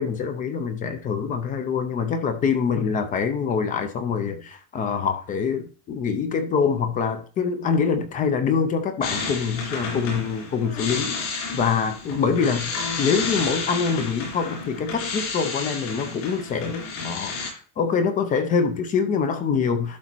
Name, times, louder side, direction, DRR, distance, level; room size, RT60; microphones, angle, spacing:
voice 1, 0.0-12.7 13.0-20.0, left 6 dB, 20° left, 0.4 m, -25 dB
sound 1, 9.0-17.5, left 4 dB, 55° left, 4.2 m, -31 dB
11.5 x 4.0 x 4.5 m
cardioid pair, 170°, 45 cm